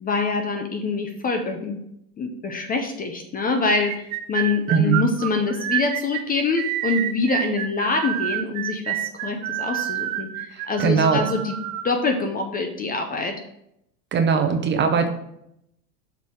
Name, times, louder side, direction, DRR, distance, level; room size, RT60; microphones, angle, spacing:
voice 1, 0.0-1.8 2.2-11.5 11.8-13.3, left 3 dB, 20° left, 5 dB, 0.5 m, -25 dB
sound 1, 3.9-11.9, right 12 dB, 65° right, 0.8 m, -28 dB
voice 2, 4.7-5.0 10.5-11.3 14.1-15.1, right 6 dB, 25° right, 6 dB, 0.7 m, -20 dB
6.7 x 3.4 x 6.2 m, 0.78 s
supercardioid pair, 120°, 44 cm